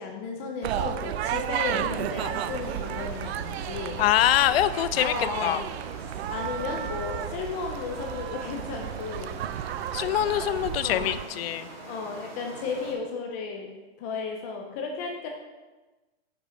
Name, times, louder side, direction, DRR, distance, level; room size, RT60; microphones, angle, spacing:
voice 1, 0.0-4.0 4.9-5.6 6.3-9.4 10.8-11.2 11.9-13.7 14.0-15.3, left 5 dB, 15° left, 1 dB, 0.4 m, -34 dB
sound 1, 0.6-11.3, right 11 dB, 75° right, 0.5 m, -33 dB
sound 2, 2.0-12.9, right 2 dB, 45° right, 2.4 m, -43 dB
voice 2, 4.0-5.1 5.4-5.6 9.9-11.7, left 12 dB, 70° left, 14 dB, 0.5 m, -24 dB
7.2 x 5.7 x 5.0 m, 1.2 s
hypercardioid pair, 160°, 32 cm